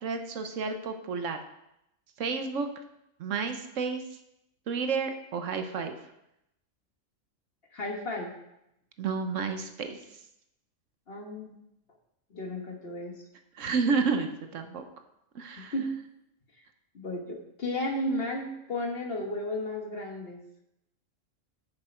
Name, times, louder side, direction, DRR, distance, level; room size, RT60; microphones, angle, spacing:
voice 1, 0.0-1.4 2.2-2.7 3.2-4.0 4.7-6.0 9.0-10.0 13.6-14.9 15.3-15.7, right 5 dB, 75° right, 6 dB, 1.2 m, -30 dB
voice 2, 7.7-8.3 11.1-11.6 12.3-13.2 15.6-15.9 16.9-20.4, left 1 dB, 50° left, 2 dB, 1.5 m, -33 dB
10.0 x 6.6 x 4.4 m, 0.84 s
omnidirectional pair, 1.3 m